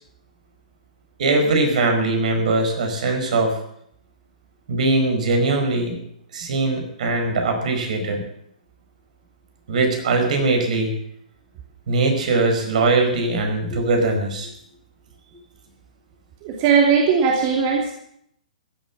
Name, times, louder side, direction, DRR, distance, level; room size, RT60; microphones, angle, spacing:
voice 1, 1.2-3.5 4.7-6.0 6.3-8.2 9.7-10.9 11.9-14.5, right 2 dB, 65° right, 4 dB, 4.9 m, -21 dB
voice 2, 16.4-17.9, right 6 dB, 40° right, 0 dB, 2.7 m, -18 dB
15.5 x 10.5 x 7.3 m, 0.72 s
hypercardioid pair, 130°, 4 cm